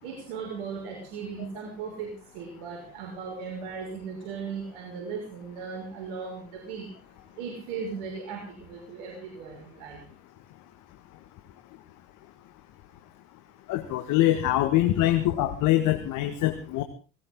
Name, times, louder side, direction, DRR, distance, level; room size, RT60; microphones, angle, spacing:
voice 1, 0.0-6.9 7.4-10.0, right 5 dB, 85° right, 1 dB, 5.9 m, -37 dB
voice 2, 13.7-16.8, left 14 dB, 70° left, 7 dB, 2.0 m, -24 dB
19.5 x 19.5 x 3.8 m, 0.35 s
supercardioid pair, 70°, 32 cm